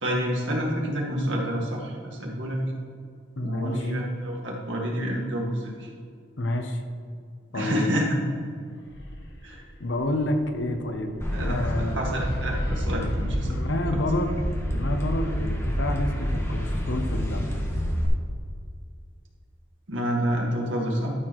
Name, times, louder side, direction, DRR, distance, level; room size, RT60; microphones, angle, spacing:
voice 1, 0.0-1.9 2.2-2.6 3.4-5.9 7.5-8.2 9.4-9.6 11.3-13.5 13.9-14.0 19.9-21.1, equal, 75° right, -2 dB, 1.9 m, -28 dB
voice 2, 3.4-3.9 6.4-6.8 7.5-8.0 9.8-12.0 13.5-14.4 14.7-17.5, left 1 dB, 75° left, 6 dB, 0.8 m, -29 dB
sound 1, 8.7-16.8, equal, 60° left, 1.2 m, -40 dB
sound 2, 11.2-18.1, equal, 15° left, 1.2 m, -28 dB
12.5 x 6.6 x 3.1 m, 2.2 s
head